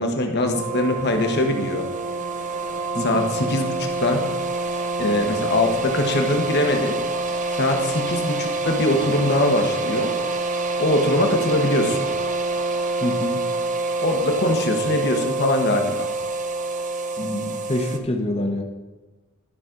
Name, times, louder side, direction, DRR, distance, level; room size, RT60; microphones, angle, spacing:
voice 1, 0.0-1.8 3.0-4.2 5.0-7.0 7.5-10.1 10.8-12.0 14.0-16.1, left 1 dB, 50° left, 4 dB, 1.1 m, -22 dB
sound 1, 0.5-18.0, right 2 dB, 35° right, 0.5 m, -26 dB
voice 2, 2.9-3.3 13.0-13.4 17.2-18.6, left 1 dB, 25° left, 2 dB, 1.0 m, -26 dB
12.0 x 6.1 x 3.8 m, 1.2 s
head